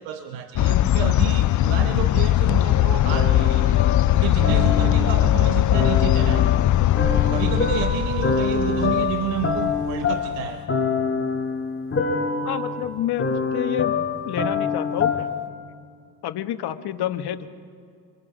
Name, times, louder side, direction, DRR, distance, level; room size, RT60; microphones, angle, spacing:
voice 1, 0.0-3.8 4.1-6.6 7.3-10.7, right 11 dB, 85° right, 7 dB, 1.1 m, -30 dB
sound 1, 0.5-10.4, left 13 dB, 45° left, 0.5 m, -20 dB
sound 2, 3.1-5.3 5.7-15.5, left 4 dB, 30° left, 2.5 m, -26 dB
voice 2, 12.4-13.9 14.2-15.3 16.2-17.5, left 11 dB, 60° left, 10 dB, 1.2 m, -28 dB
25.5 x 22.5 x 5.1 m, 2.3 s
supercardioid pair, 85°, 43 cm